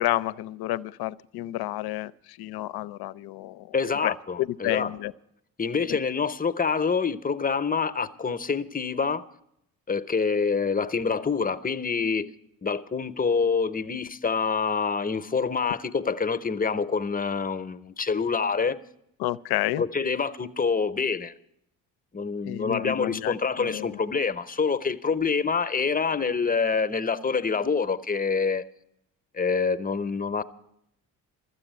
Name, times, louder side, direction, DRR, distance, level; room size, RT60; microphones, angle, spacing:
voice 1, 0.0-3.7 4.0-5.1 5.9-6.0 19.2-19.8 22.5-24.0, left 15 dB, 65° left, 0.5 m, -30 dB
voice 2, 3.7-4.9 5.6-9.2 9.9-12.3 12.6-18.8 19.8-21.3 22.1-28.6 29.3-30.4, left 5 dB, 20° left, 0.8 m, -26 dB
13.0 x 8.3 x 9.1 m
hypercardioid pair, 50°, 41 cm